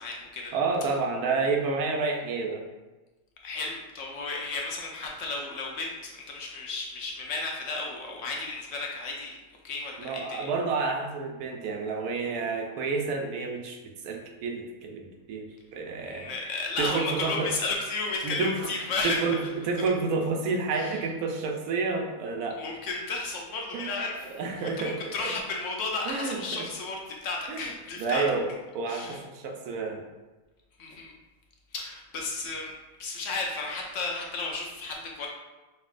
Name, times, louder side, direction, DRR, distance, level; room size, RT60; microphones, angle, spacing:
voice 1, 0.0-0.5 3.4-9.4 9.6-10.4 16.0-19.5 20.7-21.0 22.6-28.2 28.9-29.2 30.8-31.1 31.7-32.7 33.0-35.3, left 3 dB, 65° left, 0 dB, 0.9 m, -33 dB
voice 2, 0.5-2.6 10.0-13.8 14.0-16.3 16.8-17.5 18.2-18.7 19.0-22.6 23.7-24.0 24.3-25.3 26.1-26.7 27.5-27.7 28.0-28.5 28.7-30.0, right 4 dB, 80° right, 2 dB, 1.1 m, -29 dB
5.4 x 2.7 x 2.4 m, 1.2 s
omnidirectional pair, 1.6 m